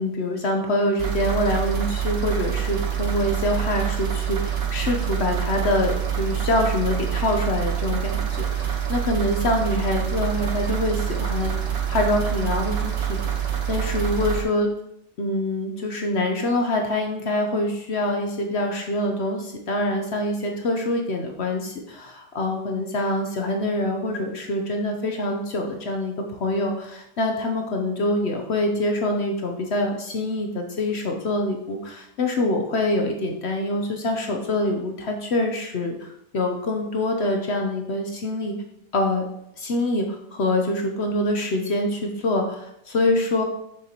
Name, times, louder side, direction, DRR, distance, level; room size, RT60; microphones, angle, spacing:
voice 1, 0.0-11.5 11.9-14.7 15.2-26.1 26.4-38.5 38.9-39.2 39.6-43.4, left 1 dB, 55° left, 3 dB, 0.8 m, -25 dB
sound 1, 1.0-14.4, right 9 dB, 50° right, 0.8 m, -26 dB
6.6 x 6.5 x 2.9 m, 0.78 s
omnidirectional pair, 1.9 m